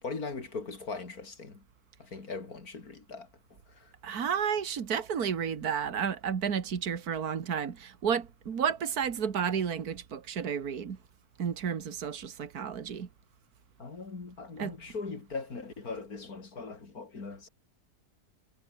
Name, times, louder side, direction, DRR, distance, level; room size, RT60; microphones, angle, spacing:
voice 1, 0.0-1.6 2.0-3.9 13.8-17.5, left 4 dB, 70° left, 3.6 m, -40 dB
voice 2, 4.0-11.0 11.4-13.1 14.6-14.7, right 7 dB, 75° right, 2.1 m, -31 dB
omnidirectional pair, 1.6 m